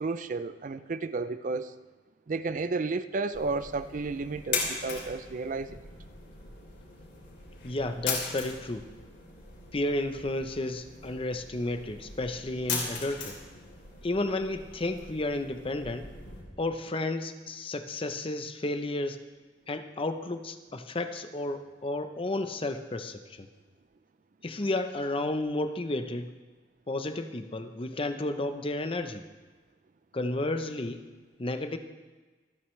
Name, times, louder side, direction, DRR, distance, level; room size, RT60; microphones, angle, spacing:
voice 1, 0.0-1.7 2.3-5.8, right 3 dB, 45° right, 12 dB, 0.5 m, -32 dB
sound 1, 3.3-16.4, left 4 dB, 70° left, 3.6 m, -39 dB
voice 2, 7.6-8.9 9.7-13.4 14.0-16.1 16.6-19.2 19.7-23.5 24.4-26.3 26.9-29.2 30.1-31.1 31.4-31.8, left 2 dB, 30° left, 8 dB, 0.7 m, -32 dB
26.5 x 9.2 x 3.2 m, 1.3 s
head